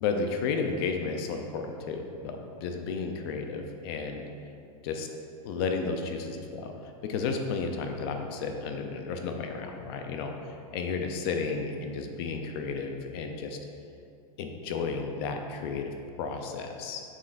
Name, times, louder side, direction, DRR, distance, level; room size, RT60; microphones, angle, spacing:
voice 1, 0.0-4.2 4.8-5.1 5.4-6.7 7.1-13.6 14.4-15.9 16.2-17.0, left 4 dB, 40° left, 4 dB, 0.6 m, -32 dB
7.5 x 6.3 x 2.6 m, 2.5 s
supercardioid pair, 170°, 20 cm